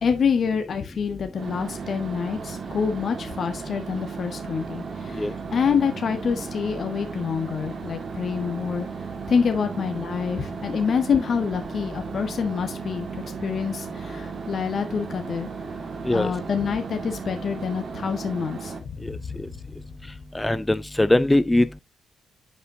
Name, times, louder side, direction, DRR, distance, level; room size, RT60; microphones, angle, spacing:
voice 1, 0.0-8.9 9.3-15.5 16.1-19.3, left 6 dB, 55° left, 1.4 m, -27 dB
sound 1, 1.3-18.8, right 5 dB, 55° right, 2.0 m, -35 dB
voice 2, 20.3-21.8, left 1 dB, 15° left, 0.6 m, -21 dB
8.0 x 8.0 x 2.8 m
hypercardioid pair, 45°, 0 cm